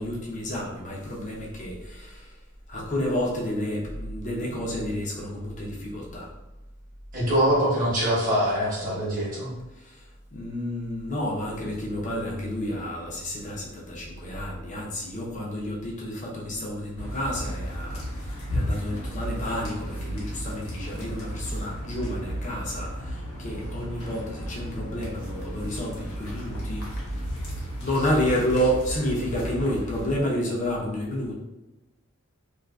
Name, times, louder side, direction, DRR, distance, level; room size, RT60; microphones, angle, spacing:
voice 1, 0.0-2.3 2.7-6.3 9.8-10.0 10.3-26.8 27.8-31.3, equal, 35° left, -3 dB, 0.5 m, -30 dB
voice 2, 7.1-9.5 19.4-19.5, equal, 40° right, -6 dB, 0.9 m, -24 dB
sound 1, 17.0-30.2, equal, 80° left, 0.9 m, -34 dB
2.4 x 2.4 x 2.2 m, 0.99 s
head